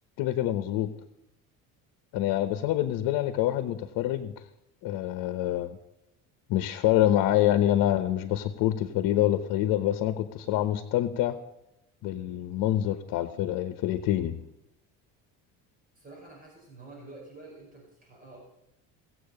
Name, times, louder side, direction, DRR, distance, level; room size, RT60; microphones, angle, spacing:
voice 1, 0.2-0.9 2.1-4.3 4.8-5.8 6.5-11.3 12.0-14.4, left 13 dB, 75° left, 11 dB, 1.1 m, -26 dB
voice 2, 16.0-18.5, right 2 dB, 25° right, -2 dB, 5.2 m, -48 dB
17.5 x 7.9 x 6.6 m, 0.87 s
cardioid pair, 120°, 34 cm